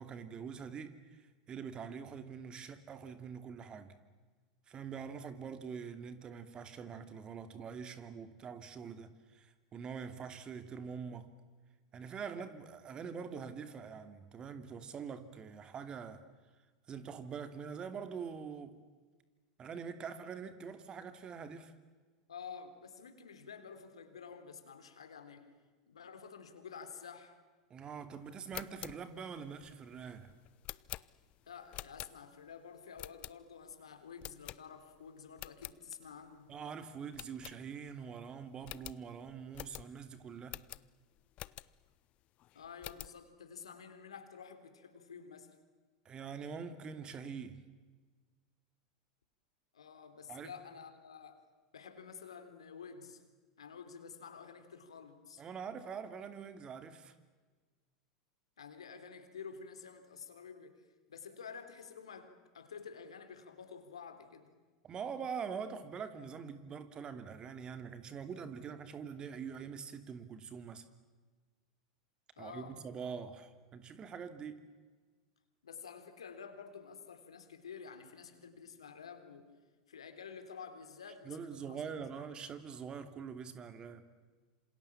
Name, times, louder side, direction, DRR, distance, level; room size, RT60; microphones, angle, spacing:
voice 1, 0.0-3.9 4.7-11.3 11.9-16.2 16.9-18.8 19.6-21.7 27.7-30.3 36.5-40.6 46.0-47.6 50.3-50.5 55.4-57.1 64.8-70.8 72.4-74.6 81.2-84.0, right 6 dB, 30° right, 10 dB, 2.8 m, -44 dB
voice 2, 22.3-25.5 25.9-27.4 31.5-36.5 42.5-45.6 49.7-51.4 51.7-53.3 53.6-55.4 58.6-64.5 72.4-72.8 75.6-79.5 79.9-81.8 82.1-82.3, left 6 dB, 85° left, 8 dB, 3.6 m, -50 dB
sound 1, 28.3-32.5 33.0-33.7 34.2-35.0 35.3-35.8 36.2-36.3 36.6-36.7 37.1-38.0 38.3-38.4 38.6-41.9 42.4-43.2, left 15 dB, 45° left, 0.8 m, -48 dB
27.5 x 27.0 x 7.3 m, 1.4 s
hypercardioid pair, 95°, 3 cm